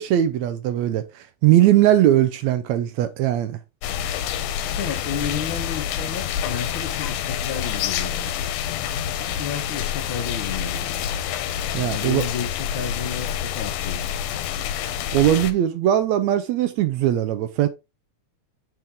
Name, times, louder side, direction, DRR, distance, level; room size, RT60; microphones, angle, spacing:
voice 1, 0.0-3.6 11.7-12.2 15.1-17.7, right 12 dB, 80° right, 1.8 m, -20 dB
sound 1, 3.8-15.5, left 9 dB, 85° left, 2.2 m, -27 dB
voice 2, 4.6-8.4 9.2-11.1 11.9-14.2, left 7 dB, 60° left, 1.4 m, -32 dB
7.7 x 4.5 x 3.5 m
omnidirectional pair, 3.4 m